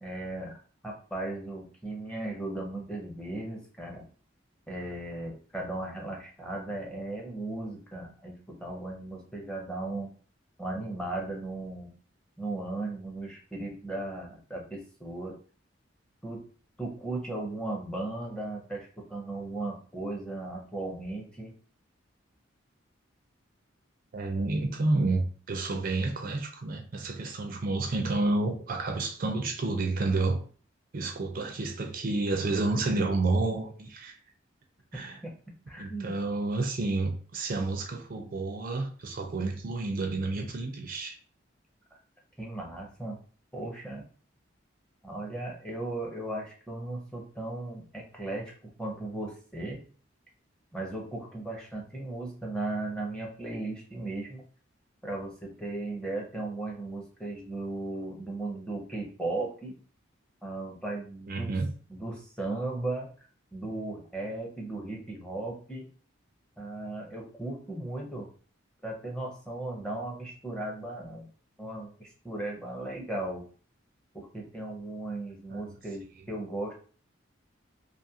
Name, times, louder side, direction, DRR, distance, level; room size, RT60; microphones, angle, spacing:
voice 1, 0.0-4.1 4.7-10.1 10.6-11.9 12.4-15.4 16.2-16.4 16.8-21.5 35.2-35.3 35.7-36.1 42.4-43.2 43.5-44.0 45.0-48.5 48.8-49.8 50.7-54.4 55.0-59.7 60.4-61.5 61.9-63.1 63.5-65.9 66.6-68.3 68.8-71.3 71.6-73.4 74.1-76.7, right 2 dB, 5° left, 0.6 m, -36 dB
voice 2, 24.1-30.4 30.9-34.2 34.9-35.2 35.8-41.2 61.3-61.7 75.5-75.8, right 2 dB, 45° right, 0.4 m, -30 dB
2.6 x 2.4 x 2.7 m
head